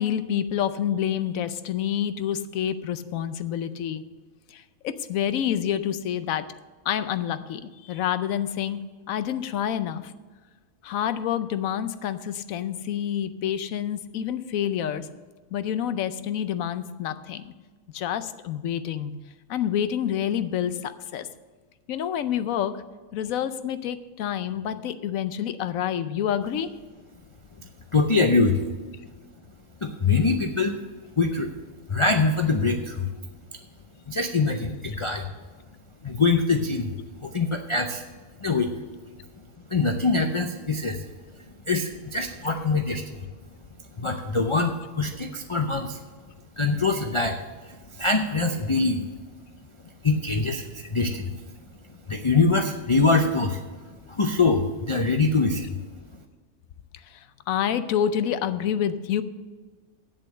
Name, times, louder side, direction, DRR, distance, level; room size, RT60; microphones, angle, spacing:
voice 1, 0.0-4.0 4.5-6.5 6.9-8.8 9.1-10.1 10.8-15.1 15.5-17.5 17.9-19.1 19.5-21.3 21.9-22.8 23.1-26.7 57.1-59.2, left 9 dB, 75° left, 12 dB, 1.0 m, -28 dB
voice 2, 27.9-28.6 29.8-30.8 31.2-31.5 31.9-33.1 34.1-35.3 36.0-36.9 37.2-38.0 38.4-38.7 39.7-41.0 41.7-43.2 44.0-46.0 46.6-47.4 48.0-49.0 50.0-51.3 52.1-53.6 54.1-55.7, left 3 dB, 40° left, 5 dB, 0.4 m, -23 dB
8.4 x 7.6 x 6.6 m, 1.4 s
omnidirectional pair, 1.5 m